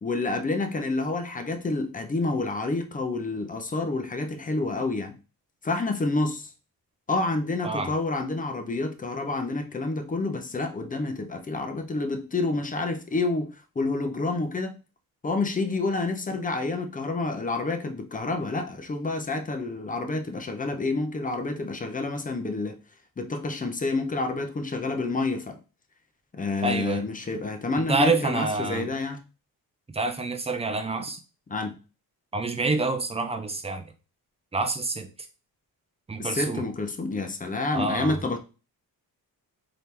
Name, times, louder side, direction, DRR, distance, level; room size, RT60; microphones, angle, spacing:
voice 1, 0.0-5.1 5.6-6.5 7.1-14.7 15.2-22.8 23.2-25.6 26.3-29.2 31.5-31.8 36.2-38.4, left 3 dB, 20° left, 0.7 m, -28 dB
voice 2, 26.6-27.1 27.9-28.9 29.9-31.2 32.3-33.8 34.5-35.1 36.1-36.6 37.7-38.2, right 3 dB, 15° right, 0.6 m, -27 dB
3.7 x 2.9 x 3.3 m
cardioid pair, 110°, 38 cm